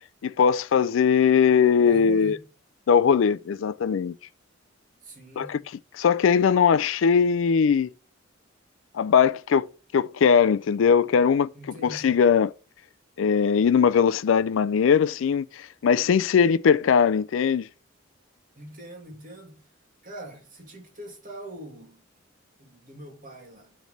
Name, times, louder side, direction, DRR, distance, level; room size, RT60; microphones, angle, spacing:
voice 1, 0.2-2.4 2.9-4.1 5.4-5.5 6.0-7.9 8.9-9.7 9.9-11.5 11.8-12.5 13.2-17.7, left 6 dB, 70° left, 0.4 m, -20 dB
voice 2, 1.8-2.4 5.0-5.7 11.5-12.2 18.6-19.6 20.0-22.1 22.6-23.8, equal, 45° right, 2.1 m, -42 dB
9.1 x 3.3 x 6.5 m
head